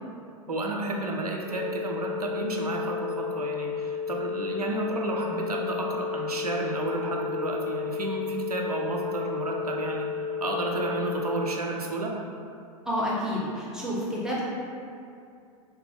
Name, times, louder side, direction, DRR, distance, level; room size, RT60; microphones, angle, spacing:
voice 1, 0.5-12.2, right 2 dB, 85° right, 0 dB, 0.4 m, -31 dB
sound 1, 1.5-11.5, left 6 dB, 65° left, 1.1 m, -32 dB
voice 2, 12.9-14.4, equal, 5° right, -6 dB, 0.4 m, -29 dB
3.1 x 2.0 x 3.2 m, 2.5 s
figure-of-eight pair, 90°, 19 cm